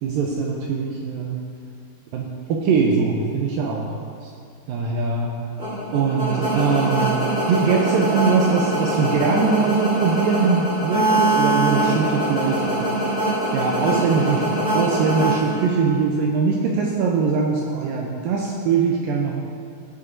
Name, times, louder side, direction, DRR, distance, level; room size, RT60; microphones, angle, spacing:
voice 1, 0.0-1.4 2.1-4.3 4.7-5.5 5.9-13.0 13.5-19.4, right 5 dB, 85° right, -1 dB, 2.0 m, -22 dB
sound 1, 5.6-16.0, right 1 dB, 20° right, 1.6 m, -23 dB
15.5 x 6.7 x 2.7 m, 2.2 s
omnidirectional pair, 4.8 m